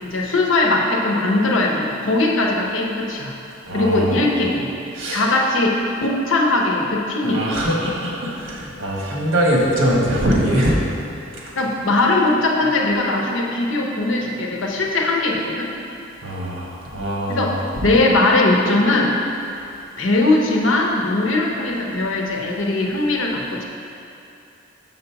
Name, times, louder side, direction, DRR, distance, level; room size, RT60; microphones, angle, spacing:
voice 1, 0.0-3.3 3.7-4.7 5.1-7.4 11.6-15.7 17.3-19.1 20.0-23.6, left 2 dB, 80° left, 0 dB, 0.8 m, -20 dB
voice 2, 3.7-4.3 4.9-5.2 7.2-10.8 16.2-17.6, equal, 80° right, -4 dB, 1.4 m, -22 dB
6.5 x 4.0 x 5.7 m, 2.7 s
head